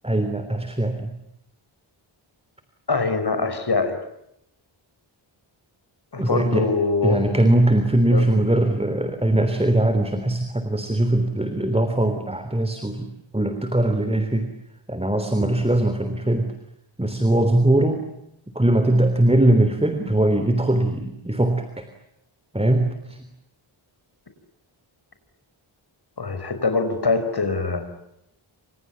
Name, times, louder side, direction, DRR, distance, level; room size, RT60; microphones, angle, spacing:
voice 1, 0.0-1.1 6.2-6.7 7.0-14.5 14.9-16.5 17.0-18.1 18.5-21.9 22.5-23.2, right 1 dB, 10° right, 7 dB, 3.4 m, -21 dB
voice 2, 2.9-4.0 6.1-7.3 8.1-8.3 26.2-27.9, left 4 dB, 50° left, 9 dB, 5.7 m, -23 dB
30.0 x 26.5 x 7.2 m, 0.80 s
wide cardioid pair, 100°, 49 cm